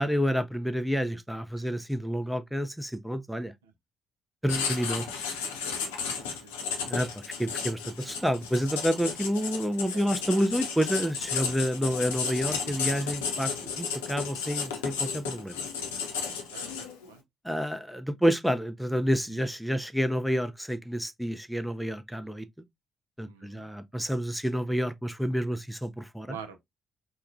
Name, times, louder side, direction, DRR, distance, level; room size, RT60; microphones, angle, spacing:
voice 1, 0.0-3.5 4.4-5.1 6.9-15.7 17.4-22.5 23.2-26.4, equal, ahead, 0.4 m, -29 dB
Writing, 4.5-17.1, left 6 dB, 75° left, 0.6 m, -33 dB
voice 2, 6.4-6.7 9.9-10.2 16.3-17.2 19.3-19.5 23.3-23.7 26.3-26.6, right 7 dB, 75° right, 0.5 m, -46 dB
4.6 x 2.2 x 2.5 m
figure-of-eight pair, 45°, 0 cm